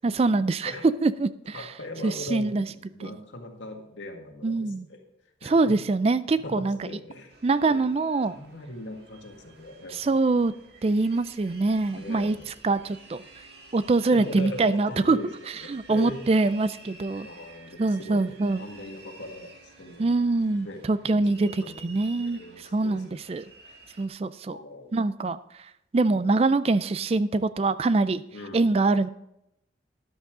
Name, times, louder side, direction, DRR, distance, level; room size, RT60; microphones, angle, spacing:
voice 1, 0.0-0.7 1.0-1.6 2.0-2.6 3.0-3.1 4.4-4.9 5.4-6.8 7.4-8.4 9.9-10.5 10.8-12.4 12.6-13.2 13.7-15.2 15.7-17.3 17.8-18.6 20.0-23.5 24.0-24.6 24.9-25.4 25.9-28.2 28.5-29.1, right 3 dB, 30° right, 15 dB, 0.3 m, -24 dB
voice 2, 1.5-5.0 5.4-5.7 6.4-7.3 7.7-7.9 8.3-10.2 11.9-12.5 14.1-16.2 17.2-20.1 20.6-23.3 24.5-24.9 28.3-28.8, left 1 dB, 85° left, 3 dB, 1.9 m, -40 dB
sound 1, 7.3-24.1, right 3 dB, 60° right, 1.8 m, -51 dB
12.5 x 11.0 x 3.7 m, 0.82 s
head